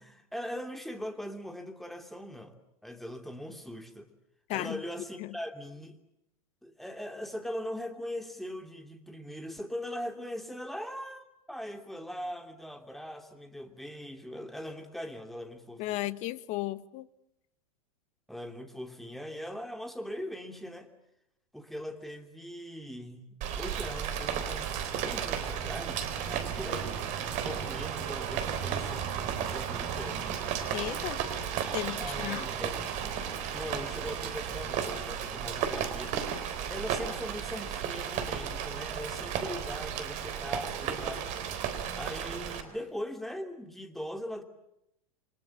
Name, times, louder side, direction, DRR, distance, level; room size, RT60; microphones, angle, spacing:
voice 1, 0.0-4.1 4.5-6.0 6.6-16.1 18.3-20.9 21.5-30.2 32.0-33.0 33.5-36.2 36.7-41.4 42.0-44.4, equal, ahead, 6 dB, 2.9 m, -41 dB
voice 2, 4.5-4.8 5.2-5.4 15.8-17.1 30.7-31.2 31.7-32.5, left 17 dB, 40° left, 16 dB, 1.2 m, -35 dB
Rain, 23.4-42.6, right 8 dB, 40° right, 3.8 m, -34 dB
28.5 x 24.0 x 8.6 m, 0.82 s
figure-of-eight pair, 90°, 18 cm